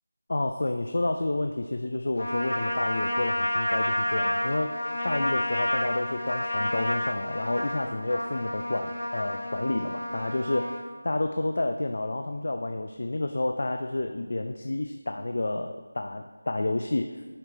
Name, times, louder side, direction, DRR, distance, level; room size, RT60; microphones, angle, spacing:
voice 1, 0.3-10.8 11.0-17.1, left 2 dB, 55° left, 6 dB, 0.4 m, -30 dB
Trumpet, 2.2-10.9, left 1 dB, 85° left, 1.5 m, -30 dB
7.3 x 4.9 x 4.2 m, 1.4 s
figure-of-eight pair, 175°, 0 cm